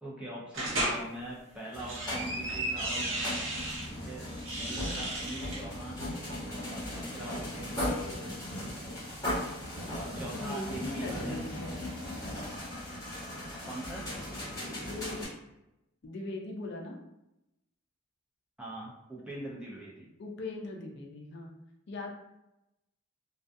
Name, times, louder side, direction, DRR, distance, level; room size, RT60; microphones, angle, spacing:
voice 1, 0.0-3.1 3.8-6.1 6.7-8.4 9.9-11.4 13.6-14.1 18.6-20.1, right 1 dB, 5° right, -6 dB, 0.5 m, -42 dB
sound 1, 0.5-1.0 1.6-3.9 4.3-5.6, right 1 dB, 65° right, 0.7 m, -34 dB
sound 2, 1.7-15.3, left 1 dB, 15° left, 1.0 m, -38 dB
voice 2, 10.1-11.8 13.6-13.7 14.8-15.2 16.0-17.0 19.2-19.3 20.2-21.5 21.9-22.1, left 2 dB, 55° left, 1 dB, 0.4 m, -40 dB
2.3 x 2.2 x 2.5 m, 0.89 s
head